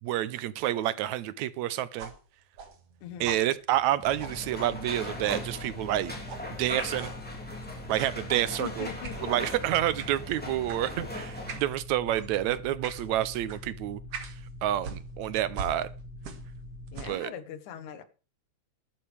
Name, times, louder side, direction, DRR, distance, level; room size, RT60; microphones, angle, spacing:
voice 1, 0.0-2.1 3.2-6.2 6.6-7.1 7.9-8.9 9.2-14.0 14.6-15.9 17.0-17.3, right 13 dB, 75° right, 2.0 m, -29 dB
sound 1, 2.0-5.0 5.3-5.5 6.3-6.5 6.9-7.2 7.9-8.2 9.0-9.2 10.0-10.2 10.7-10.9 11.5-11.7 12.1-12.3 12.8-13.1 13.5-13.6 14.1-14.4 14.8-16.6 16.9-17.3, right 5 dB, 55° right, 2.5 m, -43 dB
voice 2, 3.0-3.3 8.6-9.5 16.9-18.0, left 8 dB, 80° left, 2.6 m, -41 dB
sound 2, 4.0-17.1, left 1 dB, 60° left, 5.6 m, -44 dB
sound 3, 4.0-11.6, left 1 dB, 5° left, 2.8 m, -40 dB
15.0 x 12.0 x 3.4 m
omnidirectional pair, 3.4 m